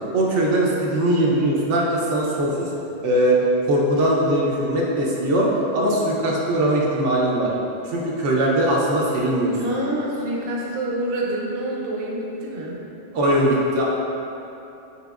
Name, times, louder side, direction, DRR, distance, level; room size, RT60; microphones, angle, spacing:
voice 1, 0.1-2.7 3.0-3.4 3.7-5.5 5.7-7.5 7.8-9.6 13.1-13.8, right 1 dB, 80° right, -4 dB, 1.0 m, -20 dB
voice 2, 9.5-12.8, right 1 dB, 55° right, -3 dB, 0.8 m, -27 dB
5.8 x 3.6 x 2.4 m, 2.9 s
omnidirectional pair, 1.2 m